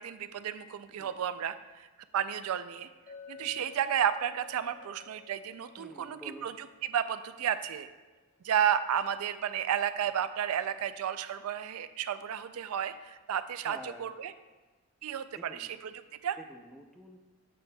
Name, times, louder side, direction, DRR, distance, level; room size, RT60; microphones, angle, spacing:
voice 1, 0.0-1.9 2.1-2.9 3.3-7.9 8.4-14.3 15.0-16.4, right 9 dB, 80° right, 12 dB, 0.3 m, -32 dB
Chink clink, 3.1-7.5, left 6 dB, 35° left, 1.0 m, -52 dB
voice 2, 3.4-3.7 5.8-6.5 13.6-14.1 15.3-15.7 16.4-17.2, equal, ahead, 3 dB, 0.4 m, -49 dB
9.4 x 7.3 x 2.2 m, 1.2 s
head